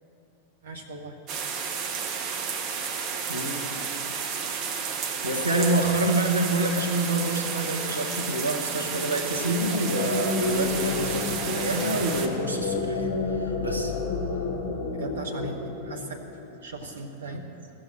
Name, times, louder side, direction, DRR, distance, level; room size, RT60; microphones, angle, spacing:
voice 1, 0.6-1.1 14.9-15.6 15.8-16.2 16.6-17.4, right 2 dB, 65° right, 1 dB, 1.1 m, -37 dB
sound 1, 1.3-12.3, right 6 dB, 35° right, 1.3 m, -32 dB
voice 2, 3.3-3.8 5.2-13.9 17.3-17.5, right 2 dB, 85° right, 2 dB, 1.2 m, -27 dB
sound 2, 9.2-16.6, left 4 dB, 40° left, 2.1 m, -30 dB
15.5 x 7.8 x 8.9 m, 2.9 s
figure-of-eight pair, 90°, 0 cm